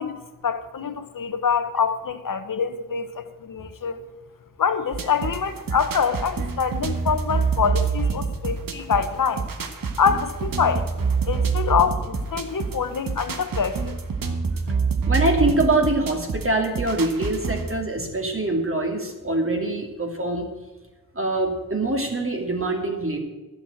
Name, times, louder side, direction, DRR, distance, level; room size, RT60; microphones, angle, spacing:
voice 1, 0.0-4.0 4.6-9.5 10.0-10.9 11.3-14.0, left 6 dB, 65° left, 1.1 m, -25 dB
sound 1, 4.9-17.8, right 5 dB, 65° right, 1.3 m, -27 dB
voice 2, 15.1-20.5 21.1-23.2, right 2 dB, 35° right, 2.9 m, -24 dB
11.5 x 7.6 x 7.9 m
cardioid pair, 50°, 36 cm